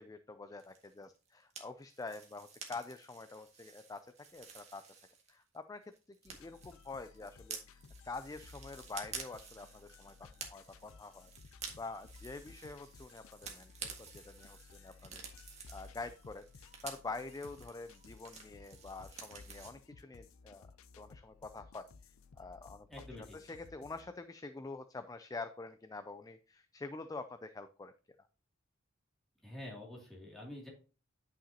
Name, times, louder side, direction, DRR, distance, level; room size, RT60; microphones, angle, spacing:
voice 1, 0.0-4.9 5.3-20.7 21.0-22.9 23.3-27.9, left 3 dB, 15° left, 10 dB, 0.3 m, -47 dB
sound 1, 0.6-5.6 5.8-19.7, right 5 dB, 30° right, 1.7 m, -51 dB
sound 2, 6.2-24.1, left 4 dB, 80° left, 0.5 m, -57 dB
voice 2, 22.9-23.4 29.4-30.7, left 1 dB, ahead, -4 dB, 2.5 m, -47 dB
9.9 x 5.8 x 2.8 m, 0.36 s
head